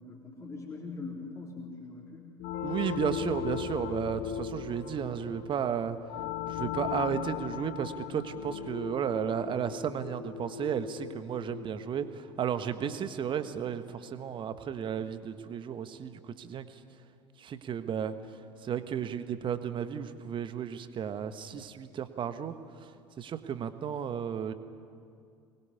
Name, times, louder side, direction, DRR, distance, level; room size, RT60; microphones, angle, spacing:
voice 1, 0.0-2.4 2.7-3.0 12.9-13.0, left 3 dB, 20° left, -2 dB, 3.5 m, -43 dB
sound 1, 2.4-12.8, left 9 dB, 50° left, 1.3 m, -38 dB
voice 2, 2.6-6.0 6.5-16.6 17.4-18.1 18.6-22.6 23.2-24.5, right 8 dB, 30° right, 10 dB, 1.5 m, -33 dB
24.5 x 21.0 x 9.7 m, 2.4 s
figure-of-eight pair, 70°, 16 cm